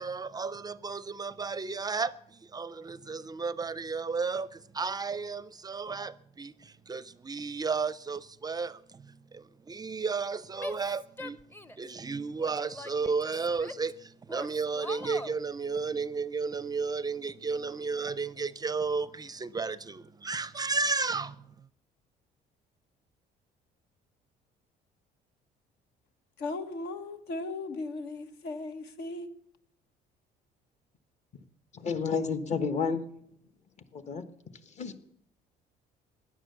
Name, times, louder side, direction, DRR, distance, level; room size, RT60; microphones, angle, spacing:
voice 1, 0.0-11.4 11.8-21.7, right 4 dB, 25° right, 0.5 m, -33 dB
Female speech woman speaking / Yell, 10.6-11.9 12.4-13.9 14.3-15.4, left 1 dB, 10° left, 0.7 m, -42 dB
voice 2, 26.4-29.3, left 2 dB, 75° left, 1.5 m, -37 dB
voice 3, 31.7-33.1 33.9-34.3 34.7-35.0, left 5 dB, 45° left, 1.3 m, -31 dB
16.0 x 10.5 x 6.9 m
cardioid pair, 110°, 17 cm